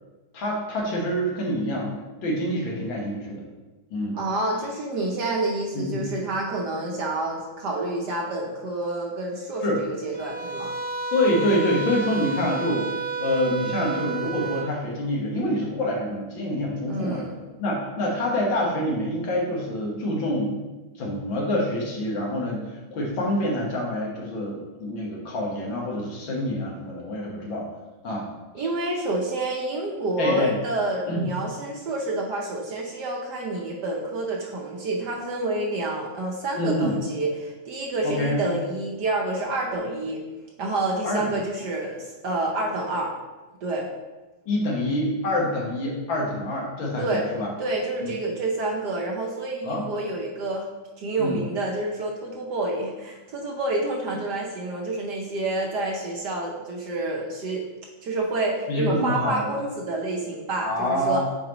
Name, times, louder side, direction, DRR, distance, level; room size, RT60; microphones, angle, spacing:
voice 1, 0.3-1.9 2.2-3.4 3.9-4.2 5.7-6.1 9.6-9.8 11.1-17.2 17.6-20.5 21.0-27.7 28.0-28.3 28.6-28.7 30.2-30.6 31.1-31.3 36.6-36.9 38.0-38.4 41.0-41.4 44.5-47.5 48.0-48.1 49.6-49.9 51.2-51.4 58.7-59.5 60.6-61.2, left 1 dB, 65° left, -2 dB, 2.0 m, -26 dB
voice 2, 4.1-10.7 16.9-17.4 28.5-40.2 40.6-43.1 43.6-43.9 47.0-47.3 47.6-50.7 51.0-57.7 58.0-61.2, right 2 dB, 60° right, -1 dB, 1.3 m, -28 dB
sound 1, 10.1-14.7, right 4 dB, 90° right, 0.6 m, -31 dB
8.9 x 4.7 x 3.0 m, 1.2 s
omnidirectional pair, 2.3 m